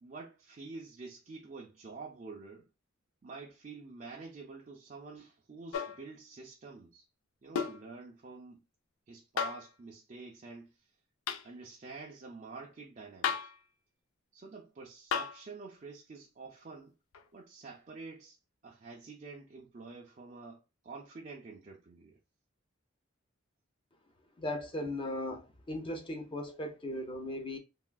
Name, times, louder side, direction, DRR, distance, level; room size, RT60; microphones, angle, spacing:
voice 1, 0.0-2.7 3.2-7.0 7.4-8.6 9.1-10.7 11.4-13.4 14.3-16.9 17.3-18.4 18.6-22.2, right 4 dB, 35° right, 0.4 m, -48 dB
sound 1, 5.7-6.0 7.6-7.8 9.4-9.7 11.3-11.5 13.2-13.6 15.1-15.4 17.1-17.2, left 7 dB, 90° left, 0.4 m, -33 dB
voice 2, 24.4-27.6, left 1 dB, 25° left, 0.5 m, -37 dB
3.4 x 2.4 x 2.2 m
head